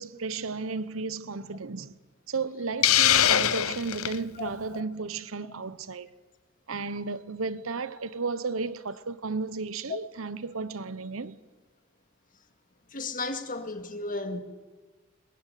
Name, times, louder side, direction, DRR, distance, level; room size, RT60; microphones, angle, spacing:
voice 1, 0.0-1.9 2.3-6.1 6.7-11.4, right 4 dB, 75° right, 1.0 m, -34 dB
Hiss, 2.8-4.2, left 11 dB, 90° left, 0.8 m, -22 dB
voice 2, 4.4-4.8 12.9-14.4, left 3 dB, 40° left, 2.1 m, -34 dB
21.5 x 21.0 x 9.2 m
head